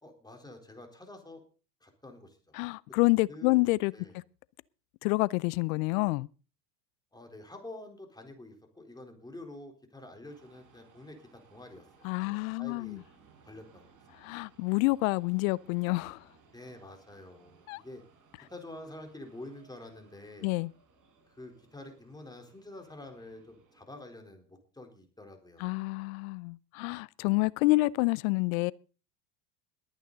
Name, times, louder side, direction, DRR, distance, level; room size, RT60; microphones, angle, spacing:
voice 1, 0.0-1.4 1.8-2.4 3.3-3.6 3.9-4.2 7.1-13.0 13.4-13.9 16.5-18.0 18.5-20.5 21.3-25.8, left 1 dB, 10° left, 3.9 m, -48 dB
voice 2, 2.5-4.2 5.0-6.3 12.0-13.0 14.2-16.3 17.7-17.8 20.4-20.7 25.6-28.7, left 24 dB, 55° left, 0.6 m, -28 dB
sound 1, 10.2-23.8, right 5 dB, 40° right, 6.1 m, -62 dB
21.0 x 9.2 x 4.0 m
hypercardioid pair, 95°, 49 cm